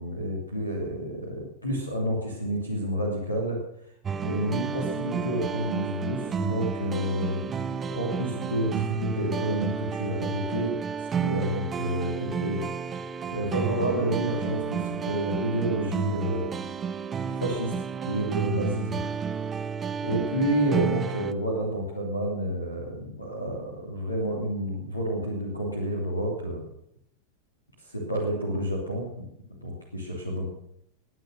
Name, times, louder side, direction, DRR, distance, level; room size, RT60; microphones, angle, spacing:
voice 1, 0.0-3.6 4.2-7.6 7.9-10.8 11.2-12.9 13.3-16.5 17.2-19.0 20.0-26.6 27.8-29.3 29.6-30.5, equal, 80° left, -1 dB, 2.9 m, -29 dB
sound 1, 4.0-21.3, right 6 dB, 20° right, 0.8 m, -31 dB
19.0 x 9.2 x 6.5 m, 0.74 s
figure-of-eight pair, 90°, 0 cm